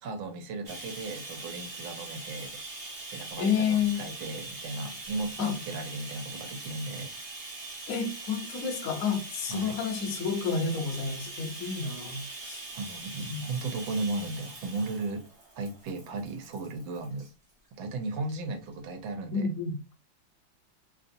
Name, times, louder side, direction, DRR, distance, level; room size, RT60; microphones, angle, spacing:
voice 1, 0.0-2.6 3.1-7.1 9.5-9.7 12.7-15.3 15.6-17.3 17.7-19.5, right 3 dB, 80° right, 1.5 m, -36 dB
Bathtub (filling or washing), 0.6-17.3 18.2-18.4 18.7-18.8, right 3 dB, 25° right, 0.8 m, -42 dB
voice 2, 3.4-4.1 5.4-5.5 7.9-12.7 13.3-13.4 19.3-19.9, left 6 dB, 60° left, 0.9 m, -30 dB
3.5 x 2.6 x 2.6 m
omnidirectional pair, 2.1 m